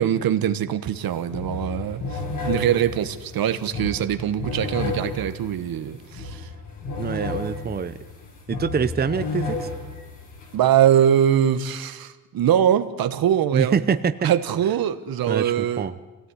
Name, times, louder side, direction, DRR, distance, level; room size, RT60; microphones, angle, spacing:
voice 1, 0.0-6.5 10.5-13.8 14.2-15.9, right 10 dB, 80° right, 11 dB, 1.4 m, -22 dB
sound 1, 0.9-1.0 1.3-10.5, left 3 dB, 60° left, 5.6 m, -32 dB
voice 2, 7.0-8.0 8.5-9.7 13.5-14.3 15.3-15.9, right 6 dB, 25° right, 11 dB, 0.8 m, -25 dB
26.0 x 17.0 x 9.8 m, 1.2 s
cardioid pair, 135°, 35 cm